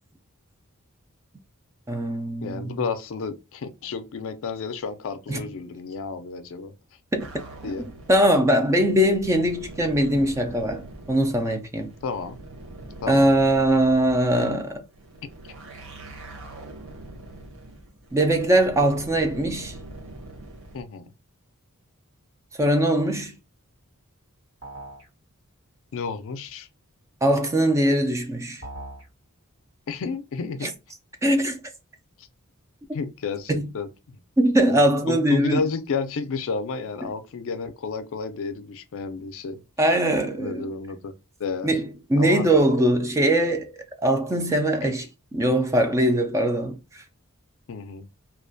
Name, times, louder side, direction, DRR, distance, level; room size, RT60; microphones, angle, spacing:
voice 1, 1.9-2.7 5.3-5.4 7.1-7.3 7.6-7.7 8.1-11.9 13.1-14.8 18.1-19.8 22.6-23.3 27.2-28.6 30.6-30.7 31.2-31.6 33.5-33.7 34.4-35.6 39.8-40.7 41.6-43.7 44.0-45.1 45.3-47.0, right 1 dB, 15° right, 0.3 m, -21 dB
voice 2, 2.4-6.7 7.6-7.9 12.0-12.4 13.0-13.3 20.7-21.1 25.9-26.7 29.9-30.7 32.2-32.3 32.9-34.2 34.7-34.8 35.1-39.6 40.4-41.1 41.4-41.7 42.2-42.5 44.8-44.9 47.7-48.1, left 5 dB, 65° left, 0.4 m, -31 dB
sound 1, 7.2-20.8, right 2 dB, 65° right, 0.7 m, -43 dB
sound 2, 24.6-25.1 28.6-29.1, right 1 dB, 90° right, 1.3 m, -39 dB
2.3 x 2.2 x 2.5 m
head